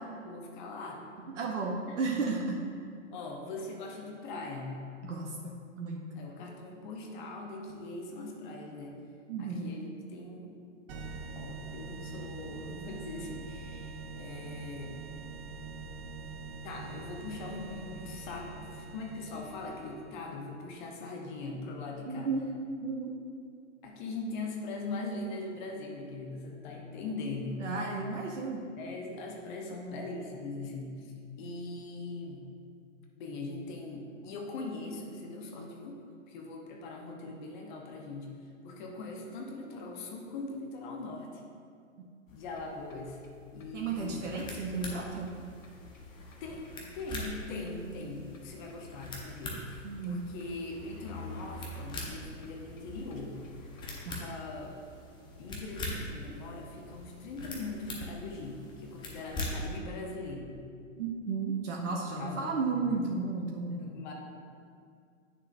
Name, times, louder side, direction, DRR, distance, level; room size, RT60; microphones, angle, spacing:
voice 1, 0.2-1.1 1.9-2.0 3.1-4.8 6.2-9.0 9.4-10.5 11.4-14.9 16.6-22.3 23.8-28.0 28.8-32.5 33.2-36.0 36.3-38.3 38.6-41.4 42.3-43.2 43.5-44.2 46.4-46.6 46.9-53.3 54.0-54.8 55.4-60.6 62.2-62.9 63.8-64.1, left 3 dB, 35° left, 1 dB, 1.0 m, -41 dB
voice 2, 1.3-2.6 5.0-5.4 5.8-6.2 9.3-9.7 22.1-22.5 22.8-23.1 27.6-28.6 43.7-45.3 49.8-50.3 54.1-54.2 61.0-63.8, right 4 dB, 65° right, -1 dB, 0.9 m, -33 dB
sound 1, 10.9-20.3, right 4 dB, 25° right, 0.5 m, -44 dB
sound 2, 42.3-54.1, left 2 dB, 75° left, 1.1 m, -50 dB
sound 3, 43.9-59.8, left 1 dB, 10° left, 0.8 m, -43 dB
9.6 x 6.5 x 2.6 m, 2.3 s
figure-of-eight pair, 110°, 39 cm